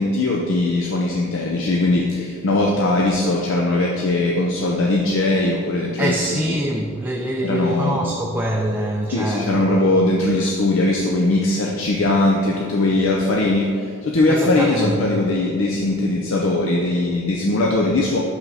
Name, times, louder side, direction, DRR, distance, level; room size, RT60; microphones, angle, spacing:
voice 1, 0.0-6.6 7.4-8.1 9.1-18.2, left 2 dB, 70° left, -1 dB, 0.6 m, -20 dB
voice 2, 6.0-9.8 14.3-15.0, right 1 dB, 10° right, -1 dB, 0.4 m, -24 dB
6.0 x 5.6 x 4.1 m, 2.3 s
head